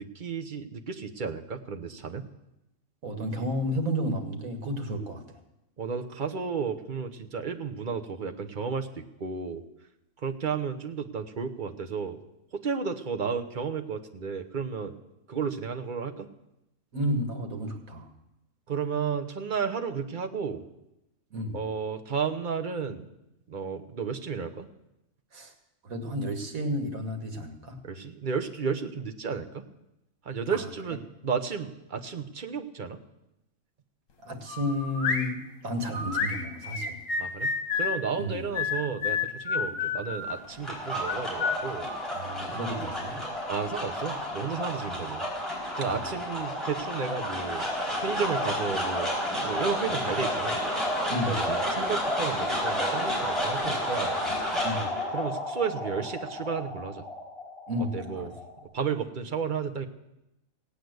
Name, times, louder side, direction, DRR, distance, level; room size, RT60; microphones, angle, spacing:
voice 1, 0.0-2.3 5.8-9.6 10.2-12.2 12.5-14.9 15.3-16.3 18.7-20.6 21.5-23.1 23.5-24.7 27.8-29.6 30.2-33.0 37.2-41.9 43.5-45.2 45.8-47.7 48.0-49.1 49.4-50.6 51.3-54.2 55.1-57.0 57.9-58.3 58.6-59.9, right 6 dB, 40° right, 6 dB, 1.1 m, -33 dB
voice 2, 3.0-5.4 16.9-18.1 21.3-21.6 25.3-25.5 25.8-27.8 30.5-30.7 34.2-37.0 38.2-38.4 39.7-39.8 42.1-43.3 44.9-45.1 45.8-46.0 51.1-51.6 54.6-55.0 57.7-58.3, equal, 85° right, 5 dB, 2.2 m, -32 dB
sound 1, 34.5-35.3 35.9-38.0 38.5-40.4 40.9-42.7, left 5 dB, 65° left, 1.7 m, -30 dB
sound 2, 40.3-58.6, equal, ahead, 4.3 m, -31 dB
17.0 x 8.5 x 8.0 m, 0.90 s
omnidirectional pair, 1.4 m